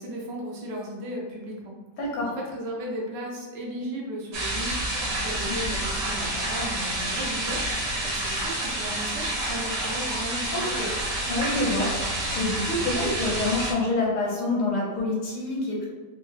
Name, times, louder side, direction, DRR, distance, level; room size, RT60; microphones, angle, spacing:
voice 1, 0.0-1.8 2.4-10.8, equal, 80° right, -2 dB, 1.4 m, -35 dB
voice 2, 2.0-2.3 10.5-10.9 11.3-11.9 12.3-15.9, left 2 dB, 75° left, -4 dB, 1.4 m, -27 dB
sound 1, 4.3-13.7, right 1 dB, 65° right, 1.2 m, -29 dB
3.6 x 2.1 x 3.1 m, 1.3 s
omnidirectional pair, 1.9 m